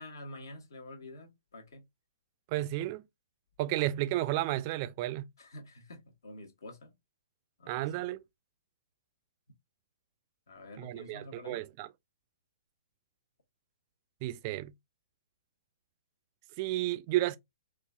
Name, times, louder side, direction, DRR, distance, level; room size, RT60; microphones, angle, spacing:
voice 1, 0.0-1.8 5.4-6.9 7.6-7.9 10.5-11.6, left 1 dB, 70° left, 1.2 m, -48 dB
voice 2, 2.5-3.0 3.6-5.3 7.7-8.2 10.8-11.9 14.2-14.7 16.6-17.4, right 15 dB, 35° right, 0.4 m, -32 dB
3.7 x 2.4 x 2.3 m
figure-of-eight pair, 125°, 2 cm